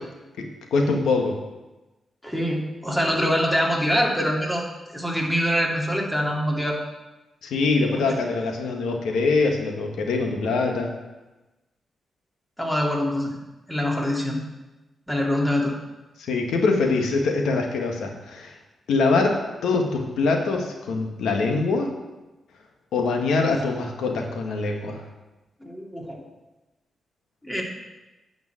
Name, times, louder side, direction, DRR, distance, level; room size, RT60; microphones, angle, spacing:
voice 1, 0.4-1.4 7.4-11.0 16.2-18.6 18.9-21.9 22.9-25.0, left 3 dB, 85° left, 2 dB, 1.5 m, -23 dB
voice 2, 2.2-6.8 7.9-8.2 12.6-13.3 13.7-14.4 15.1-15.7 25.6-26.2 27.4-27.6, equal, 5° left, -1 dB, 2.6 m, -24 dB
9.7 x 5.1 x 7.7 m, 1.1 s
cardioid pair, 65°, 0 cm